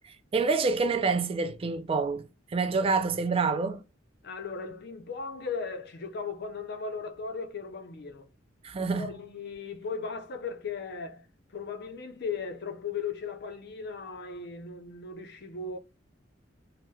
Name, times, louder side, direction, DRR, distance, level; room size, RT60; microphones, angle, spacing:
voice 1, 0.3-2.2 2.5-3.8 8.6-9.1, right 4 dB, 30° right, 0.3 m, -27 dB
voice 2, 4.2-8.3 9.0-11.2 11.5-15.8, left 5 dB, 60° left, 0.5 m, -37 dB
3.1 x 2.9 x 2.3 m
head